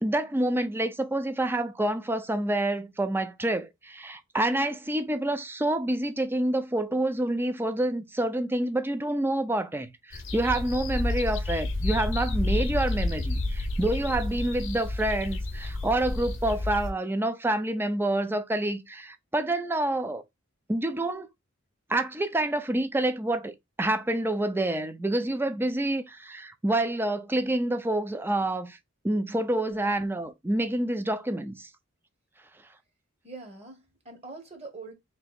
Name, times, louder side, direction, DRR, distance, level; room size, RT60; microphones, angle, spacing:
voice 1, 0.0-20.2 20.7-21.3 21.9-23.5 23.8-28.8 29.0-31.7, right 1 dB, 10° right, 0.5 m, -28 dB
sound 1, 10.1-16.9, left 2 dB, 65° left, 0.8 m, -30 dB
voice 2, 33.2-34.9, right 3 dB, 35° right, 1.3 m, -44 dB
3.3 x 2.8 x 4.1 m
head